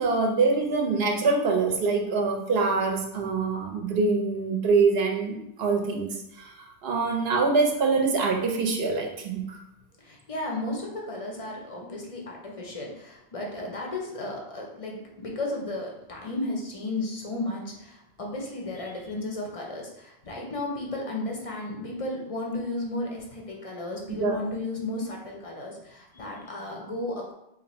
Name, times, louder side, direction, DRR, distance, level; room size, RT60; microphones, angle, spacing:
voice 1, 0.0-9.6 24.1-24.4, right 4 dB, 60° right, 1 dB, 0.8 m, -25 dB
voice 2, 10.0-27.3, left 2 dB, 40° left, -1 dB, 0.5 m, -34 dB
2.8 x 2.5 x 4.0 m, 0.84 s
omnidirectional pair, 1.2 m